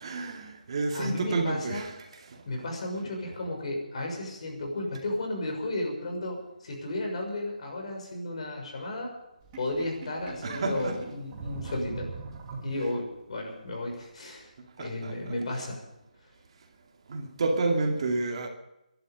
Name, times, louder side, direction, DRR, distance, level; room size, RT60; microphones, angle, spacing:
voice 1, 0.0-2.7 10.4-11.0 12.7-12.9 14.8-15.6 17.1-18.5, right 3 dB, 45° right, 2.4 m, -30 dB
voice 2, 0.9-1.8 2.4-9.1 9.6-12.1 12.6-14.5 14.8-15.8, left 1 dB, 50° left, 6.3 m, -33 dB
Sink (filling or washing), 9.4-13.2, right 4 dB, 20° right, 2.9 m, -42 dB
23.0 x 11.5 x 5.2 m
hypercardioid pair, 165°, 4 cm